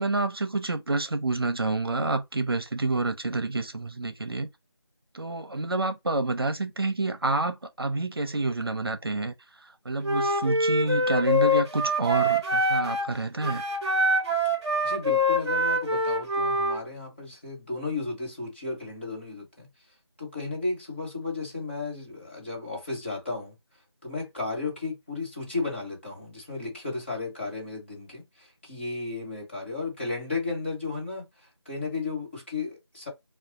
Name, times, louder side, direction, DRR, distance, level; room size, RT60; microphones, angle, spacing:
voice 1, 0.0-4.5 5.1-13.6, right 2 dB, 60° right, 0.6 m, -28 dB
Wind instrument woodwind instrument, 10.0-13.1 13.4-16.8, equal, ahead, 0.8 m, -25 dB
voice 2, 14.8-19.7 20.2-23.5 24.0-31.3 31.6-33.1, left 3 dB, 25° left, 1.4 m, -34 dB
3.4 x 2.4 x 3.8 m
figure-of-eight pair, 170°, 14 cm